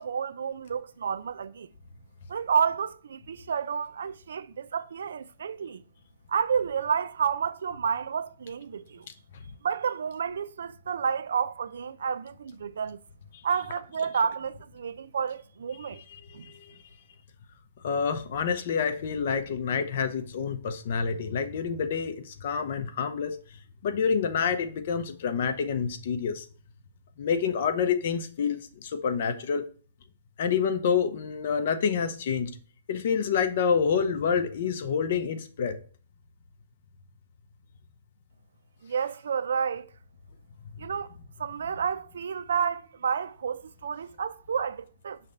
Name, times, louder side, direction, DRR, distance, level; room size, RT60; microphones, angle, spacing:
voice 1, 0.0-1.7 2.3-5.8 6.3-9.1 9.6-13.0 13.4-16.0 16.3-16.5 38.8-39.9 40.8-41.1 41.4-45.2, right 6 dB, 75° right, 0.4 m, -30 dB
voice 2, 16.1-16.5 17.8-23.4 23.8-26.5 27.2-29.6 30.4-32.5 32.9-35.8, left 6 dB, 45° left, 0.7 m, -28 dB
5.6 x 3.3 x 5.2 m
hypercardioid pair, 170°, 0 cm